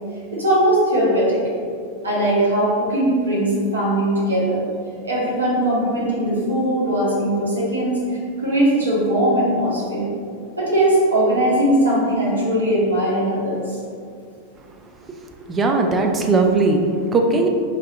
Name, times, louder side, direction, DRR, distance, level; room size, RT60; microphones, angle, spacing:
voice 1, 0.3-1.4 2.0-4.6 5.0-8.0 8.4-10.1 10.6-13.6, right 1 dB, 75° right, -6 dB, 1.2 m, -19 dB
voice 2, 15.5-17.5, right 3 dB, 20° right, 3 dB, 0.4 m, -18 dB
3.9 x 2.6 x 3.7 m, 2.3 s
figure-of-eight pair, 90°, 0 cm